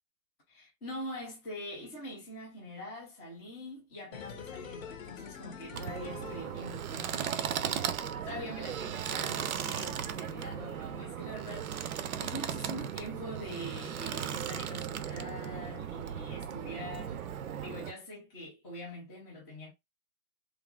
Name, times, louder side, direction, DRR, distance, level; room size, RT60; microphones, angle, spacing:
voice 1, 0.5-17.2 17.6-19.7, left 1 dB, 10° left, 0.4 m, -44 dB
sound 1, 4.1-7.2 7.5-7.6, left 7 dB, 65° left, 0.8 m, -46 dB
sound 2, 5.7-17.9, right 9 dB, 65° right, 0.6 m, -37 dB
2.8 x 2.5 x 2.2 m
hypercardioid pair, 130°, 45 cm